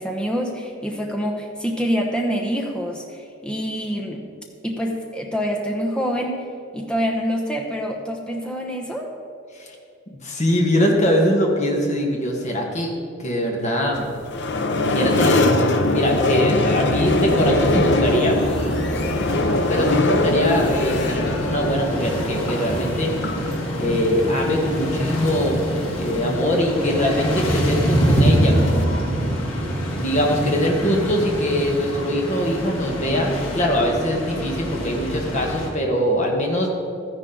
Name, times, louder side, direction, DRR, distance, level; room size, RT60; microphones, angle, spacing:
voice 1, 0.0-4.2 4.6-6.4 6.7-9.1, equal, 5° left, 0 dB, 1.0 m, -26 dB
voice 2, 10.2-12.9 13.2-14.1 14.9-18.4 19.7-25.6 25.9-28.9 29.9-36.7, equal, 35° left, 0 dB, 1.5 m, -22 dB
sound 1, 13.9-28.8, left 2 dB, 55° left, 0.7 m, -23 dB
sound 2, 17.0-35.7, equal, 85° left, 2.0 m, -25 dB
13.0 x 10.0 x 3.9 m, 2.4 s
head